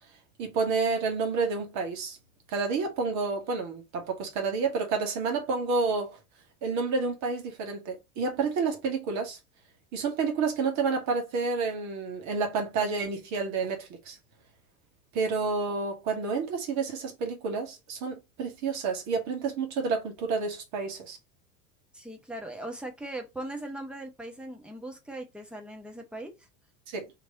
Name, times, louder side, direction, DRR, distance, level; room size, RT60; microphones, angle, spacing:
voice 1, 0.4-2.2 2.5-6.2 6.6-9.4 9.9-14.2 15.1-21.2 26.9-27.1, right 4 dB, 40° right, 1.3 m, -29 dB
voice 2, 21.9-26.3, right 1 dB, ahead, 0.9 m, -39 dB
3.2 x 2.9 x 4.1 m
figure-of-eight pair, 85°, 44 cm